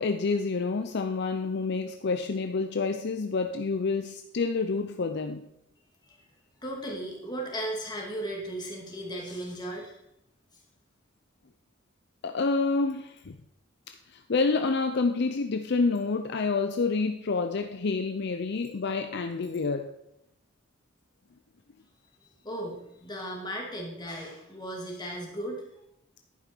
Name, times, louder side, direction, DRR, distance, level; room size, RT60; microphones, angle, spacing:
voice 1, 0.0-5.4 12.2-13.4 14.3-19.9, left 4 dB, 60° left, 7 dB, 0.6 m, -28 dB
voice 2, 6.6-10.0 22.4-25.6, right 1 dB, 20° left, -2 dB, 2.5 m, -36 dB
11.0 x 9.1 x 4.5 m, 0.81 s
head